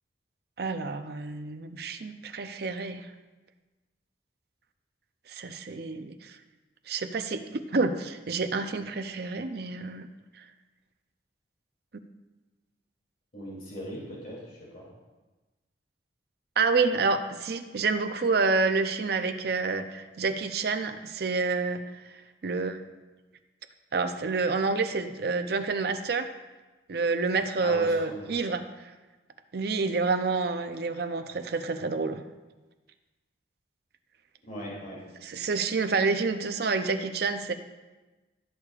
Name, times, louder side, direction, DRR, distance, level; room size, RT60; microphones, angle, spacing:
voice 1, 0.6-3.1 5.3-6.3 6.9-10.1 16.6-22.8 23.9-26.3 26.9-28.6 29.5-32.2 35.2-37.5, right 4 dB, 55° right, 8 dB, 0.5 m, -28 dB
voice 2, 13.3-14.8 27.6-28.3 34.5-35.0, equal, 50° left, -6 dB, 2.9 m, -39 dB
15.5 x 6.6 x 2.4 m, 1.2 s
head